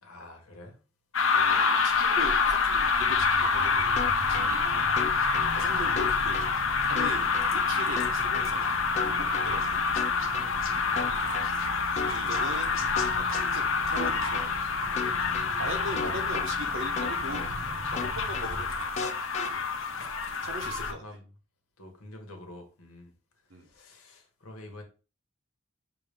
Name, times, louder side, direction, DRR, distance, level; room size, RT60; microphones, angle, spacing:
voice 1, 0.0-0.8 1.8-2.1 5.6-6.0 10.6-11.2 12.1-12.5 15.7-16.2 18.4-18.6 20.2-20.5 20.8-21.3 21.8-23.1 23.5-24.8, left 1 dB, 85° left, 1.3 m, -48 dB
sound 1, 1.1-20.9, left 5 dB, 65° left, 0.7 m, -27 dB
voice 2, 1.3-4.9 5.5-6.4 6.9-9.9 12.0-12.8 13.2-14.7 15.6-17.5 17.9-19.6 20.4-21.0 23.5-23.7, right 1 dB, 65° right, 0.9 m, -40 dB
sound 2, 1.9-19.3, right 1 dB, 30° right, 0.6 m, -42 dB
sound 3, 4.0-4.5 5.0-5.5 6.0-6.5 7.0-7.5 8.0-8.5 9.0-9.5 10.0-10.5 11.0-11.5 12.0-12.5 13.0-13.5 14.0-14.5 15.0-15.5 16.0-16.5 17.0-17.5 18.0-18.5 19.0-19.5, left 5 dB, 30° left, 0.3 m, -34 dB
5.6 x 2.7 x 3.4 m
head